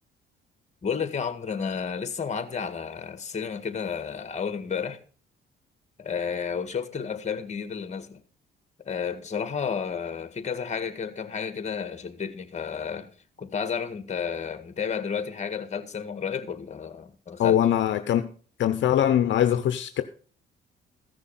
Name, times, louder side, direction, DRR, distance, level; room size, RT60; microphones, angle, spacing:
voice 1, 0.8-5.0 6.0-8.2 8.9-13.1 13.4-17.6, left 6 dB, 35° left, 1.8 m, -31 dB
voice 2, 17.4-18.3 18.6-20.0, left 10 dB, 70° left, 0.8 m, -22 dB
15.0 x 6.3 x 5.8 m
cardioid pair, 90°, 20 cm